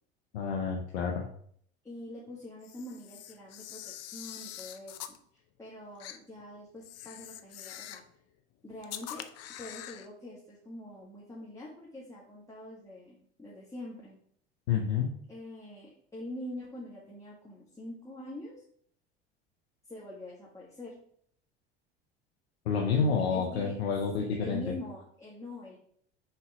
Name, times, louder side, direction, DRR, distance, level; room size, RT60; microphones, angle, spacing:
voice 1, 0.3-1.2 14.7-15.1 22.7-24.7, left 5 dB, 80° left, 0 dB, 1.0 m, -29 dB
voice 2, 1.8-5.0 5.3-8.0 8.6-9.3 9.6-14.2 15.3-18.6 19.9-20.9 22.9-25.8, left 1 dB, 10° left, -6 dB, 1.9 m, -44 dB
Camera, 2.6-5.2 6.0-6.2 6.8-8.1 8.8-10.1, left 11 dB, 50° left, 0.7 m, -44 dB
5.7 x 4.2 x 4.9 m, 0.63 s
hypercardioid pair, 70°, 32 cm